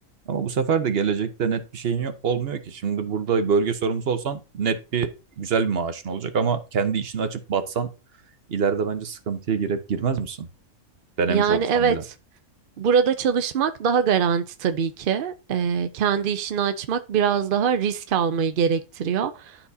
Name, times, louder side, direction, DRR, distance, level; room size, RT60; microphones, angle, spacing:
voice 1, 0.3-5.1 5.4-7.9 8.5-10.5 11.2-12.0, right 6 dB, 50° right, 0.9 m, -25 dB
voice 2, 11.3-12.0 12.8-19.6, right 7 dB, 65° right, 0.5 m, -23 dB
12.0 x 4.3 x 2.7 m
omnidirectional pair, 1.6 m